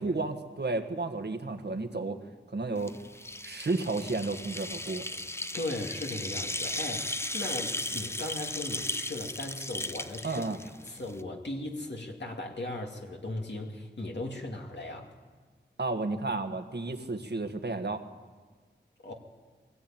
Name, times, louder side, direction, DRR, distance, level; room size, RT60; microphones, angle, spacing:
voice 1, 0.0-2.2 2.5-3.0 3.4-5.0 10.2-10.6 15.8-18.0, right 3 dB, 65° right, 6 dB, 1.6 m, -32 dB
sound 1, 2.8-11.2, left 1 dB, 15° left, 0.6 m, -36 dB
voice 2, 5.5-10.4 10.9-15.1 19.0-19.1, left 2 dB, 70° left, 1 dB, 2.5 m, -37 dB
22.0 x 16.5 x 8.9 m, 1.4 s
wide cardioid pair, 75°, 19 cm